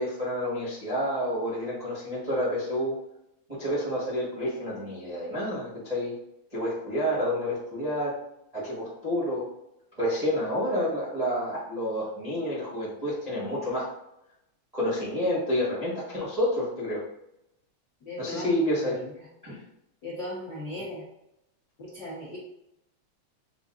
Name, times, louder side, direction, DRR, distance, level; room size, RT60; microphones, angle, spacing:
voice 1, 0.0-3.0 3.5-6.2 6.5-8.2 8.5-9.5 10.0-13.9 14.7-17.0 18.2-19.0 19.4-19.6, equal, 80° right, -10 dB, 0.3 m, -29 dB
voice 2, 18.0-18.5 20.0-21.0 21.8-22.4, left 1 dB, 65° left, -8 dB, 1.0 m, -37 dB
6.8 x 2.4 x 2.5 m, 0.83 s
omnidirectional pair, 3.3 m